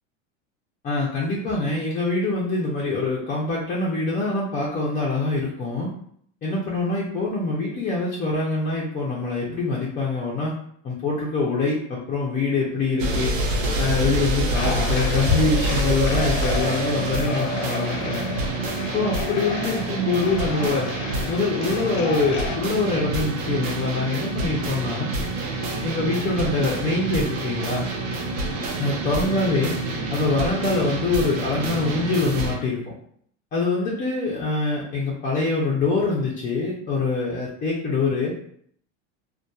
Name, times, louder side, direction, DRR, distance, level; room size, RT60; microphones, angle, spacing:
voice 1, 0.8-5.9 6.4-10.5 10.8-13.3 13.8-18.3 18.9-20.9 21.3-25.1 25.8-27.9 28.8-29.7 30.1-32.8 33.5-38.3, left 3 dB, 20° left, -5 dB, 0.4 m, -24 dB
sound 1, 13.0-32.6, right 2 dB, 75° right, 0.8 m, -27 dB
sound 2, 14.5-22.6, left 6 dB, 80° left, 0.5 m, -34 dB
2.6 x 2.2 x 2.2 m, 0.64 s
supercardioid pair, 115°, 39 cm